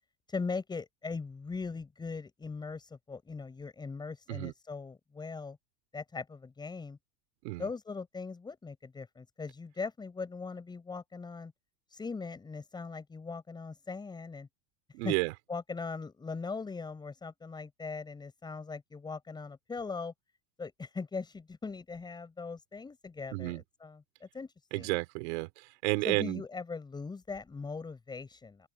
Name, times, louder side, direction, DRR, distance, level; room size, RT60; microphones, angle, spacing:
voice 1, 0.3-5.6 5.9-7.0 7.6-11.5 11.9-14.5 15.0-15.1 15.5-20.1 20.6-24.9 26.0-28.7, left 4 dB, 10° left, 6.0 m, -40 dB
voice 2, 14.9-15.3 23.3-23.6 24.7-26.4, right 24 dB, 70° right, 4.0 m, -31 dB
open air
supercardioid pair, 160°, 35 cm